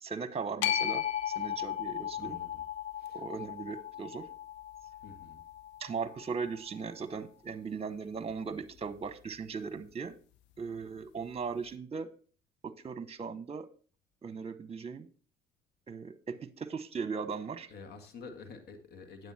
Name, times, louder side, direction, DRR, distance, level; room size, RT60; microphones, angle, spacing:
voice 1, 0.0-2.4 3.1-4.3 5.8-10.1 10.6-12.1 12.6-13.7 14.2-15.1 15.9-17.7, right 5 dB, 35° right, 14 dB, 1.0 m, -38 dB
sound 1, 0.6-6.8, left 10 dB, 85° left, 0.7 m, -36 dB
voice 2, 2.2-2.6 2.9-3.2 5.0-5.4 17.7-19.3, left 4 dB, 65° left, 7 dB, 1.9 m, -49 dB
9.2 x 7.9 x 4.3 m, 0.39 s
supercardioid pair, 60°, 18 cm